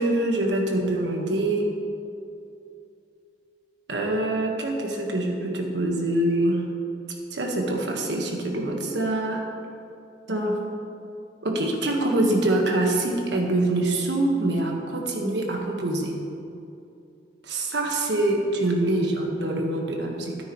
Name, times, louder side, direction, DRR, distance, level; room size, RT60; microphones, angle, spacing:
voice 1, 0.0-1.7 3.9-6.6 7.3-9.4 10.3-10.7 11.4-16.2 17.4-20.4, right 1 dB, 75° right, 1 dB, 1.4 m, -25 dB
13.0 x 9.4 x 3.1 m, 2.6 s
head